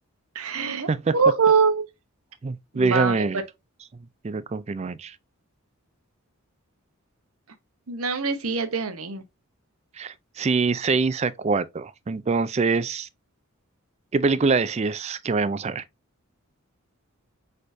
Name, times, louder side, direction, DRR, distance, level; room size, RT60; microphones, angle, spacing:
voice 1, 0.3-1.9 2.7-3.2 7.9-9.2, right 5 dB, 75° right, 0.9 m, -23 dB
voice 2, 2.4-3.4 4.2-5.2 10.0-13.1 14.1-15.8, right 4 dB, 30° right, 0.3 m, -24 dB
4.7 x 4.3 x 2.6 m
head